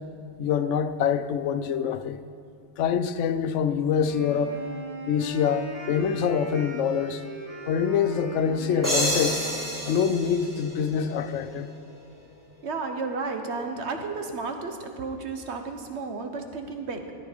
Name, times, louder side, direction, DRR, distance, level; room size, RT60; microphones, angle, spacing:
voice 1, 0.4-2.2 2.8-4.6 5.1-7.2 7.7-9.4 9.9-11.7, left 7 dB, 80° left, 0.9 m, -25 dB
Wind instrument woodwind instrument, 4.0-10.2, right 1 dB, 45° right, 3.0 m, -40 dB
sound 1, 8.8-11.5, equal, 15° right, 3.1 m, -29 dB
voice 2, 12.6-17.0, right 4 dB, 65° right, 1.3 m, -32 dB
14.0 x 9.8 x 5.0 m
omnidirectional pair, 1.3 m